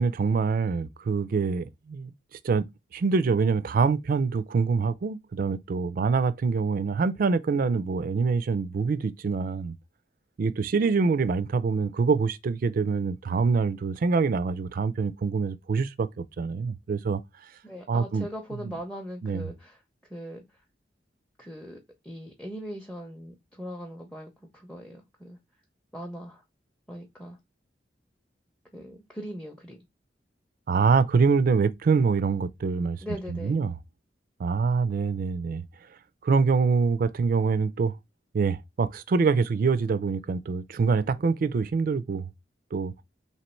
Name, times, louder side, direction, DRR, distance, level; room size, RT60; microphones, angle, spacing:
voice 1, 0.0-2.1 2.4-2.7 2.9-9.7 10.4-17.2 17.9-18.3 19.2-19.5 30.7-33.0 33.3-33.7 34.4-35.6 36.2-37.9 38.3-42.3 42.7-42.9, right 5 dB, 50° right, 0.3 m, -25 dB
voice 2, 17.6-19.8 20.1-20.6 21.4-25.4 25.9-26.4 26.9-27.4 28.7-29.9 33.0-33.6, equal, 5° left, 0.6 m, -40 dB
3.0 x 2.9 x 4.3 m
head